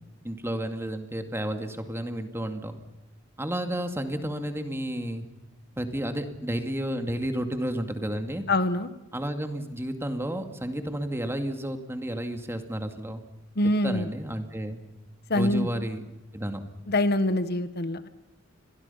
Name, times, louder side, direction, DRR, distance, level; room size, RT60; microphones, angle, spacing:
voice 1, 0.2-2.7 3.4-5.3 5.8-8.4 9.1-13.2 13.8-14.8 15.3-16.0 16.3-16.6, right 1 dB, 15° right, 6 dB, 2.2 m, -31 dB
voice 2, 8.5-8.9 13.5-14.1 15.3-15.7 16.9-18.1, left 1 dB, 55° left, 12 dB, 1.3 m, -24 dB
29.5 x 23.0 x 5.7 m, 1.0 s
head